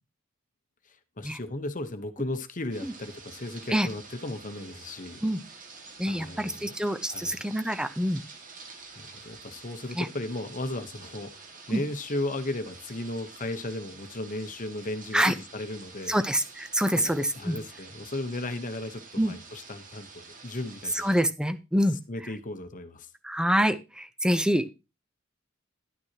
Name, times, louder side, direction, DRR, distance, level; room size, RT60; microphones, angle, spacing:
voice 1, 0.9-5.2 6.1-6.7 7.1-7.4 8.9-16.2 16.9-21.1 21.9-23.1, left 2 dB, 40° left, 9 dB, 1.0 m, -35 dB
sound 1, 2.7-21.2, right 4 dB, 40° right, 1.9 m, -48 dB
voice 2, 6.0-8.2 9.9-10.1 11.7-11.8 15.1-15.3 16.1-17.6 19.2-19.3 20.9-22.0 23.2-24.7, equal, 5° right, 10 dB, 0.7 m, -26 dB
11.0 x 9.5 x 2.9 m, 0.27 s
head